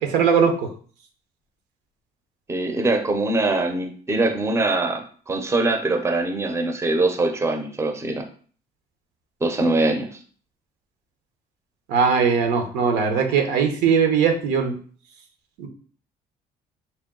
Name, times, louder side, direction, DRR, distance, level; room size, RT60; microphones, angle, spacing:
voice 1, 0.1-0.7 11.9-14.7 15.6-15.7, right 6 dB, 85° right, 4 dB, 0.9 m, -20 dB
voice 2, 2.5-8.3 9.4-10.1, right 2 dB, 15° right, 5 dB, 0.6 m, -23 dB
4.4 x 2.2 x 3.6 m, 0.43 s
cardioid pair, 110°, 17 cm